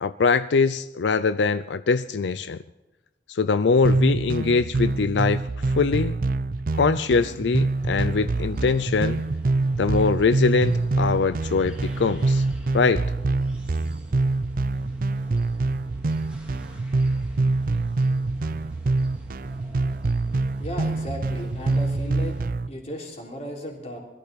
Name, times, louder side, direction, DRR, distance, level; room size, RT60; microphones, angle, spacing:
voice 1, 0.0-2.6 3.3-6.2 6.7-9.2 9.8-12.4 12.7-13.0, left 4 dB, 90° left, 13 dB, 0.5 m, -22 dB
sound 1, 3.8-22.7, right 3 dB, 50° right, 0.5 m, -25 dB
sound 2, 7.8-22.5, equal, 5° right, 2.2 m, -45 dB
voice 2, 20.6-22.4 22.7-24.0, equal, 40° left, -1 dB, 3.6 m, -35 dB
21.5 x 13.5 x 4.2 m, 1.0 s
head